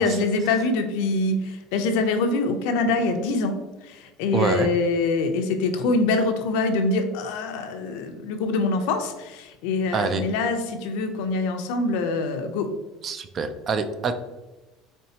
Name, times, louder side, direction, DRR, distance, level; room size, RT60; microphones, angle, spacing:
voice 1, 0.0-12.7, left 3 dB, 80° left, 6 dB, 0.5 m, -24 dB
voice 2, 4.3-4.7 9.9-10.2 13.0-14.1, right 5 dB, 35° right, 10 dB, 0.3 m, -25 dB
4.4 x 3.1 x 2.8 m, 1.1 s
cardioid pair, 140°, 0 cm